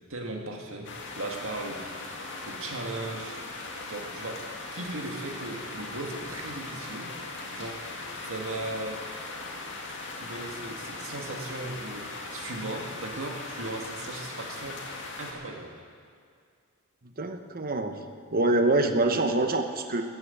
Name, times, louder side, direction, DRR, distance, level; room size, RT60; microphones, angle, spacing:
voice 1, 0.1-2.1 2.4-3.4 3.7-7.2 7.5-9.0 10.2-14.8 15.2-15.7, right 2 dB, 65° right, 1 dB, 1.9 m, -37 dB
sound 1, 0.8-15.3, left 3 dB, 55° left, 2.0 m, -39 dB
voice 2, 17.2-18.0 18.3-20.0, right 2 dB, 40° right, 6 dB, 1.0 m, -25 dB
14.0 x 9.5 x 7.9 m, 2.2 s
head